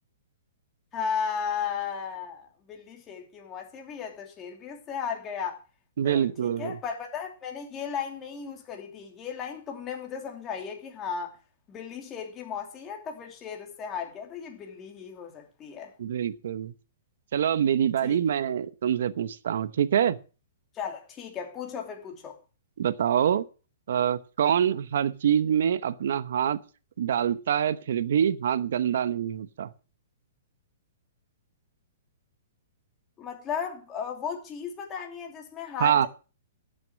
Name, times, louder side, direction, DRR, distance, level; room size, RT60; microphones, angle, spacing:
voice 1, 0.9-5.6 6.0-11.4 11.7-15.9 18.0-18.2 20.7-22.4 33.2-36.1, left 7 dB, 20° left, 2.9 m, -35 dB
voice 2, 6.0-6.8 16.0-16.7 17.3-20.2 22.8-23.4 23.9-26.6 27.0-29.7 35.8-36.1, right 9 dB, 70° right, 0.9 m, -25 dB
12.0 x 8.0 x 6.2 m
hypercardioid pair, 155°, 0 cm